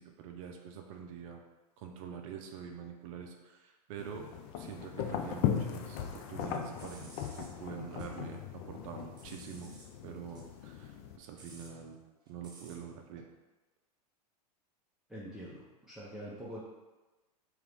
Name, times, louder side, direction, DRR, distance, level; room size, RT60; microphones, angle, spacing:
voice 1, 0.0-1.4 1.8-4.3 4.6-9.7 10.0-12.0 12.3-13.3, right 7 dB, 55° right, 3 dB, 0.5 m, -45 dB
sound 1, 4.0-11.2, left 9 dB, 45° left, 0.5 m, -38 dB
sound 2, 6.8-8.2 8.5-9.9 10.2-12.9, right 2 dB, 20° right, 1.2 m, -57 dB
voice 2, 15.1-16.6, equal, ahead, -9 dB, 0.8 m, -45 dB
3.6 x 3.1 x 3.4 m, 1.1 s
hypercardioid pair, 110°, 20 cm